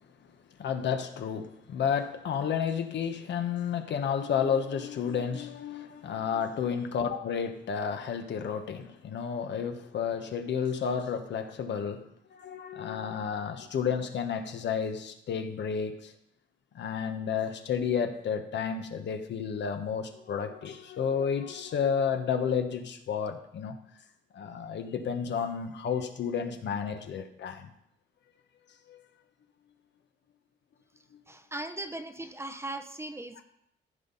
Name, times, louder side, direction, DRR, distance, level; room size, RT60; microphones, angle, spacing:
voice 1, 0.6-12.1 12.3-16.1 16.7-23.8 24.3-27.7 28.9-29.0 31.1-31.2 33.4-33.5, left 7 dB, 65° left, 7 dB, 1.2 m, -31 dB
voice 2, 31.3-33.4, right 2 dB, 15° right, 7 dB, 0.8 m, -38 dB
14.5 x 5.6 x 4.0 m, 0.75 s
cardioid pair, 90°, 20 cm